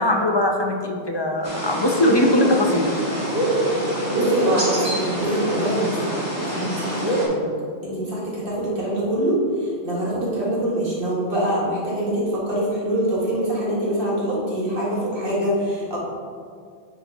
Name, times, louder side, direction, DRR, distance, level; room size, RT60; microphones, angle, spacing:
voice 1, 0.0-2.9 7.1-7.2, left 1 dB, 30° left, 1 dB, 0.7 m, -20 dB
sound 1, 1.4-7.3, right 1 dB, 15° right, 1.8 m, -25 dB
voice 2, 4.1-6.2 6.5-7.4 7.8-16.0, right 1 dB, 60° right, -7 dB, 2.2 m, -24 dB
9.2 x 4.0 x 4.0 m, 2.1 s
omnidirectional pair, 1.1 m